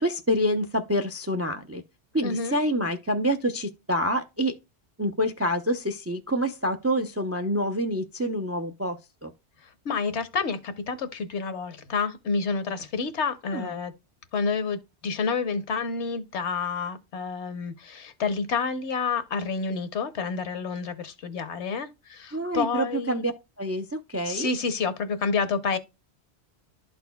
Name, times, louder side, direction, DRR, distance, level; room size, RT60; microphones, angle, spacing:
voice 1, 0.0-1.8 2.1-4.5 5.0-9.3 13.5-13.7 22.3-23.3 23.6-24.5, equal, 25° right, 0.3 m, -27 dB
voice 2, 2.2-2.6 9.8-13.9 14.3-23.2 24.2-25.8, left 5 dB, 75° left, 1.1 m, -29 dB
12.0 x 4.1 x 2.2 m
omnidirectional pair, 1.2 m